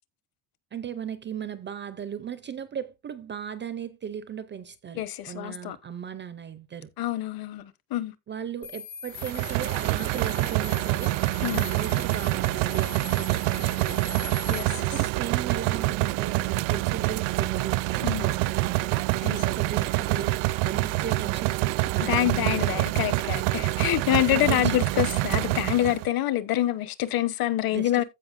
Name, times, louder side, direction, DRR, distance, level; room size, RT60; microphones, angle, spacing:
voice 1, 0.7-6.9 8.3-14.3 14.7-23.0 24.3-24.9 27.7-28.0, right 8 dB, 25° right, 0.4 m, -37 dB
voice 2, 4.9-5.8 7.0-8.1 11.4-11.6 14.5-14.9 18.0-18.3 19.2-19.4 22.0-28.0, left 13 dB, 45° left, 1.0 m, -26 dB
sound 1, 8.6-14.6, left 6 dB, 65° left, 2.7 m, -41 dB
sound 2, 9.2-26.1, right 18 dB, 70° right, 0.6 m, -26 dB
15.0 x 5.5 x 2.5 m
cardioid pair, 175°, 48 cm